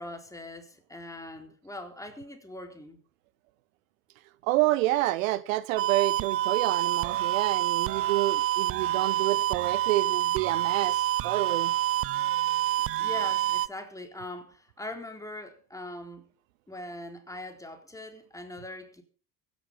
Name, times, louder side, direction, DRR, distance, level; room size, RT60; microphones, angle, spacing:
voice 1, 0.0-3.0 12.8-16.2 16.7-19.0, left 1 dB, 5° left, 4.1 m, -41 dB
voice 2, 4.4-11.7, right 17 dB, 60° right, 0.8 m, -28 dB
sound 1, 5.8-13.7, right 13 dB, 30° right, 0.6 m, -27 dB
16.0 x 11.5 x 5.6 m
figure-of-eight pair, 65°, 45 cm